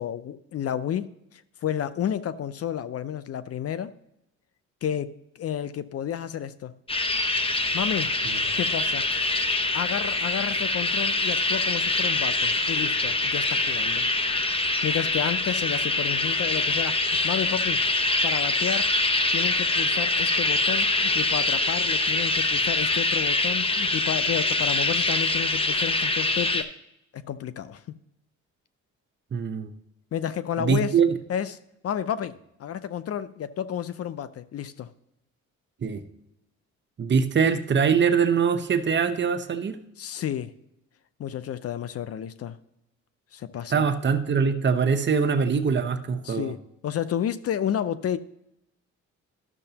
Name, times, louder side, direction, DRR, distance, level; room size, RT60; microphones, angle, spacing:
voice 1, 0.0-3.9 4.8-6.7 7.7-8.1 8.6-9.1 9.7-14.1 14.8-17.8 18.2-18.9 19.3-26.7 27.1-27.8 30.1-31.0 31.3-31.6 31.8-32.3 32.6-34.9 40.0-40.5 41.2-42.6 43.3-43.9 46.2-48.2, left 9 dB, 50° left, 15 dB, 0.5 m, -31 dB
sound 1, 6.9-26.6, left 2 dB, 20° left, 0.8 m, -24 dB
voice 2, 29.3-29.7 30.6-31.1 35.8-36.0 37.0-39.8 43.7-46.5, right 6 dB, 40° right, 9 dB, 0.8 m, -23 dB
12.0 x 6.6 x 2.8 m, 0.83 s
cardioid pair, 90°, 30 cm